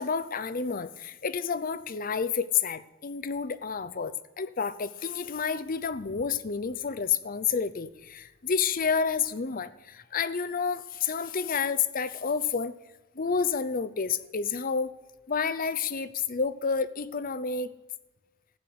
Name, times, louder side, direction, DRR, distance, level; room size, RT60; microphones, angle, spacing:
voice 1, 0.0-12.8 13.2-14.9 15.3-17.7, left 6 dB, 40° left, 15 dB, 0.6 m, -29 dB
15.0 x 6.6 x 9.4 m, 1.1 s
head